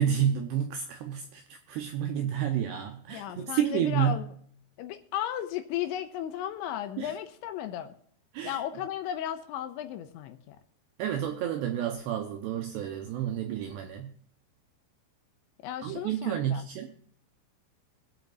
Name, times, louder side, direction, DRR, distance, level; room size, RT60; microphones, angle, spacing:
voice 1, 0.0-4.2 7.0-7.1 8.3-8.6 11.0-14.1 15.8-16.9, right 9 dB, 80° right, 2.4 m, -30 dB
voice 2, 3.1-4.3 4.8-7.9 8.4-10.6 15.6-16.6, left 11 dB, 85° left, 2.9 m, -35 dB
23.5 x 8.0 x 2.4 m
omnidirectional pair, 5.7 m